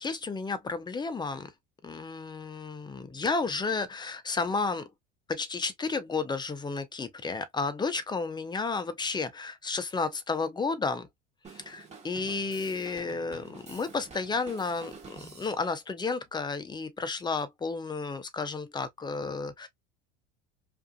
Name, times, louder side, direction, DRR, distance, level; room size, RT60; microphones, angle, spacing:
voice 1, 0.0-1.5 1.8-4.9 5.3-11.1 11.5-19.7, left 4 dB, 15° left, 0.5 m, -32 dB
Drum kit, 11.4-15.6, right 4 dB, 20° right, 1.2 m, -48 dB
2.5 x 2.4 x 2.3 m
supercardioid pair, 100°, 30 cm